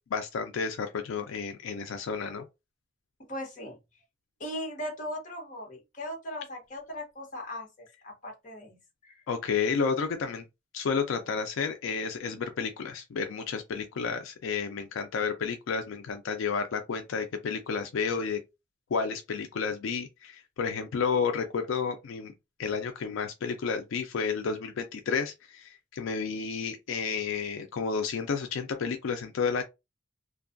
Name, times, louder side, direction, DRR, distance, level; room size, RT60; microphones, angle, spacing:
voice 1, 0.1-2.4 9.3-10.4 10.7-18.4 18.9-22.3 22.6-29.6, left 5 dB, 85° left, 0.4 m, -31 dB
voice 2, 3.3-3.8 4.4-7.7 8.0-8.8 9.0-9.2, left 1 dB, 40° left, 0.9 m, -38 dB
2.5 x 2.2 x 2.5 m
head